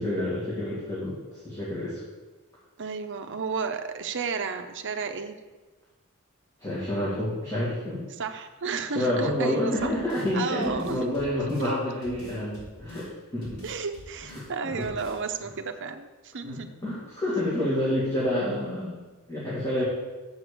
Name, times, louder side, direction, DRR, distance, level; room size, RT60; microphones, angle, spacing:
voice 1, 0.0-2.0 6.6-8.1 8.9-13.1 13.3-13.6 14.3-14.9 16.4-19.8, left 1 dB, 15° left, -9 dB, 2.2 m, -29 dB
voice 2, 2.8-5.4 8.2-9.9 10.3-11.3 11.6-11.7 13.6-16.7, right 5 dB, 60° right, 6 dB, 0.7 m, -32 dB
sound 1, 9.8-10.3 10.6-11.7 12.0-13.1 13.4-14.5 14.8-15.2, right 1 dB, 70° left, 3.5 m, -47 dB
7.2 x 6.2 x 6.7 m, 1.2 s
head